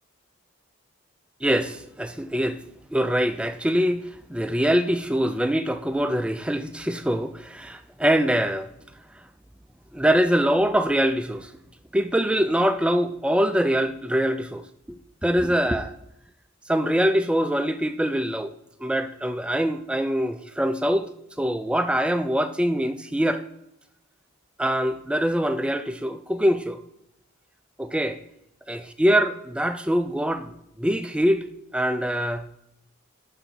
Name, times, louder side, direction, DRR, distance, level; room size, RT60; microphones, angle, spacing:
voice 1, 1.4-2.6 2.9-8.7 9.9-11.5 11.9-14.6 14.9-15.9 16.7-18.5 18.8-21.1 21.4-23.4 24.6-26.8 27.8-28.2 28.7-30.5 30.8-32.4, equal, 5° right, 0.3 m, -23 dB
6.6 x 3.9 x 6.0 m
head